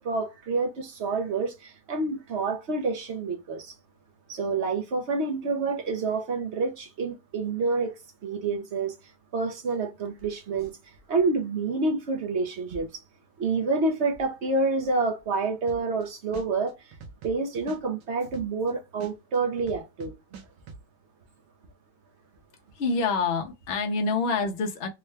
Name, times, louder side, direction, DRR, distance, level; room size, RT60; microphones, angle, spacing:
voice 1, 0.0-3.7 4.3-7.9 8.2-8.9 9.3-10.8 11.1-13.0 13.4-16.9 17.2-20.1, right 3 dB, 55° right, 0.8 m, -28 dB
sound 1, 15.7-16.0 16.3-18.7 19.0-20.8, right 5 dB, 90° right, 1.4 m, -44 dB
voice 2, 22.7-24.9, left 4 dB, 50° left, 0.8 m, -26 dB
3.6 x 2.2 x 3.2 m
omnidirectional pair, 1.9 m